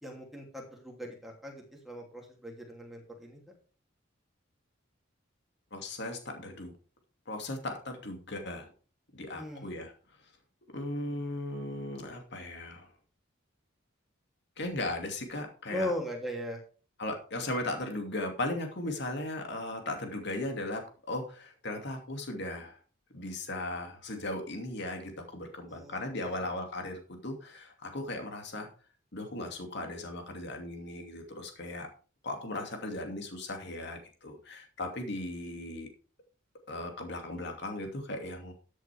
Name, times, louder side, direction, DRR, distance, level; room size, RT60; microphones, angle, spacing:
voice 1, 0.0-3.4 9.3-9.7 10.9-11.2 15.7-16.6 25.7-26.5, left 1 dB, ahead, -1 dB, 3.0 m, -39 dB
voice 2, 5.7-6.7 7.3-8.7 9.1-9.9 10.7-12.9 14.6-15.9 17.0-20.8 21.1-22.8 23.1-28.7 29.1-31.9 32.2-35.9 36.7-38.5, left 1 dB, 60° left, 4 dB, 2.6 m, -37 dB
13.5 x 8.2 x 3.6 m, 0.39 s
head